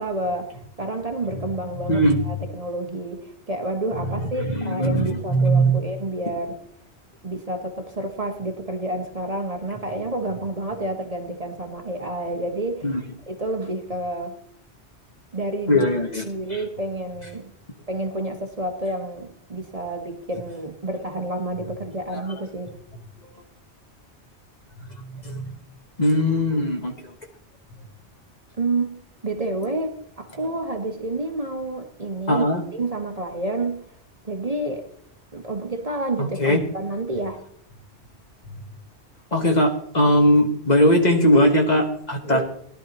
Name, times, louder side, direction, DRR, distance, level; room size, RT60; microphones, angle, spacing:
voice 1, 0.0-6.6 7.2-14.3 15.3-15.9 16.2-17.5 17.9-22.7 28.6-28.9 29.2-29.9 30.2-33.8 34.2-34.8 35.3-37.4 42.2-42.4, right 2 dB, 35° right, 4 dB, 1.1 m, -29 dB
voice 2, 1.9-2.2 4.4-5.8 12.8-13.0 15.7-16.2 22.1-22.2 25.2-25.4 26.0-27.1 32.3-32.6 36.2-36.6 39.3-42.4, equal, 40° left, 3 dB, 1.5 m, -19 dB
17.5 x 11.5 x 3.0 m, 0.66 s
omnidirectional pair, 1.2 m